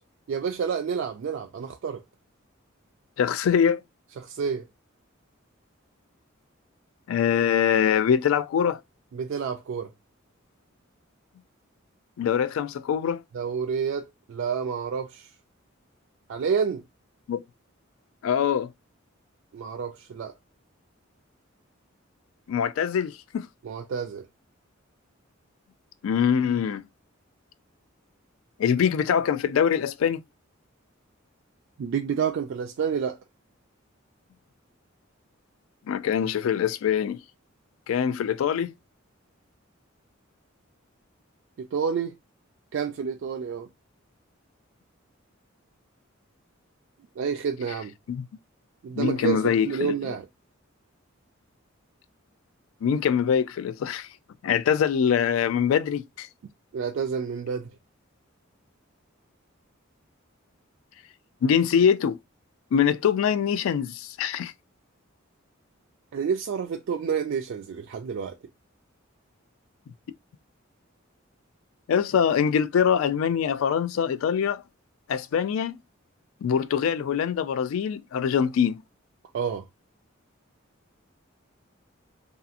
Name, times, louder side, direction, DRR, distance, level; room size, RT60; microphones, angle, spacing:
voice 1, 0.3-2.0 4.2-4.7 9.1-9.9 13.3-15.3 16.3-16.8 19.5-20.3 23.6-24.3 31.8-33.2 41.6-42.1 42.7-43.7 47.2-47.9 48.8-50.3 56.7-57.7 66.1-68.4 79.3-79.6, right 6 dB, 60° right, 0.3 m, -29 dB
voice 2, 3.2-3.8 7.1-8.8 12.2-13.2 17.3-17.4 18.2-18.7 22.5-23.5 26.0-26.8 28.6-30.2 35.9-37.2 37.9-38.7 48.1-48.3 49.0-50.2 52.8-54.1 54.4-56.3 61.4-62.2 62.7-64.5 71.9-74.6 75.1-75.8 76.4-78.8, left 8 dB, 80° left, 0.3 m, -23 dB
2.7 x 2.4 x 2.4 m
head